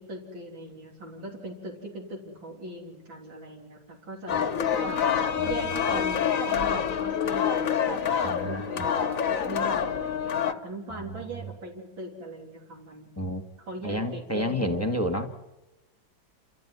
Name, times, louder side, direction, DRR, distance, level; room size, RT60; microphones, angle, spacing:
voice 1, 0.0-5.0 5.4-13.1 13.7-15.2, right 1 dB, 75° right, -1 dB, 4.0 m, -40 dB
sound 1, 4.3-10.5, left 8 dB, 50° left, 1.3 m, -27 dB
voice 2, 8.2-8.6 10.9-11.2 13.2-13.4 13.8-15.3, left 1 dB, 10° left, 6 dB, 1.4 m, -30 dB
28.5 x 14.0 x 9.6 m, 1.0 s
omnidirectional pair, 2.1 m